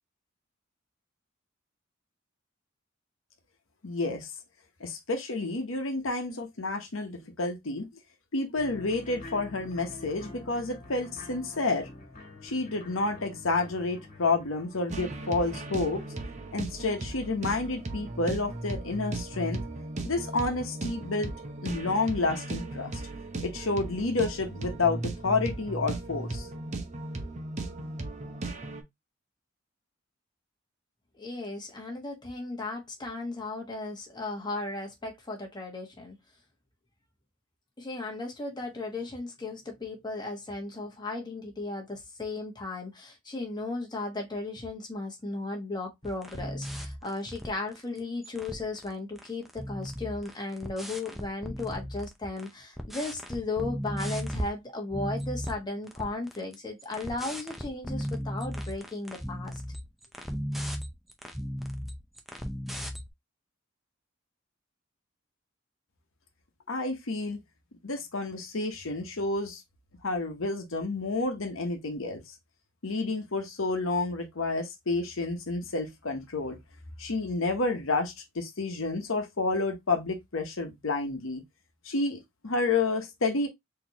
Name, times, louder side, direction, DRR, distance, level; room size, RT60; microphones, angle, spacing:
voice 1, 3.8-4.3 4.8-7.9 8.3-11.9 12.4-16.0 16.5-19.6 20.0-21.3 21.6-23.0 23.4-26.5 66.7-67.4 67.8-69.6 70.0-72.2 72.8-76.6 77.0-81.4 81.8-83.5, left 3 dB, 85° left, 1.0 m, -30 dB
sound 1, 8.6-16.9, left 2 dB, 40° left, 1.7 m, -47 dB
sound 2, 14.9-28.8, right 2 dB, 35° right, 0.8 m, -36 dB
voice 2, 31.2-36.1 37.8-59.6, left 2 dB, 20° left, 1.2 m, -35 dB
sound 3, 46.2-48.0 48.2-48.9 49.2-52.5 52.8-54.5 54.9-55.6 55.9-63.1, equal, ahead, 0.6 m, -36 dB
4.1 x 3.0 x 2.8 m
head